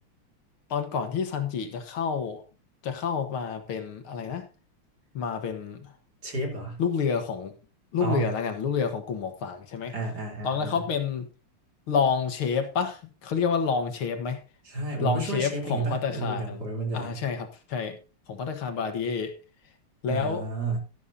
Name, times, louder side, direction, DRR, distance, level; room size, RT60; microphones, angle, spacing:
voice 1, 0.7-2.4 2.8-4.5 5.1-5.9 6.8-7.5 7.9-9.9 10.4-11.3 11.9-14.4 15.0-16.7 16.9-18.0 18.3-19.3 20.0-20.5, left 6 dB, 70° left, 7 dB, 2.3 m, -29 dB
voice 2, 6.2-6.8 8.0-8.3 9.9-10.8 14.7-17.2 20.1-20.8, right 3 dB, 45° right, 1 dB, 4.0 m, -31 dB
13.0 x 12.0 x 2.8 m, 0.33 s
omnidirectional pair, 2.4 m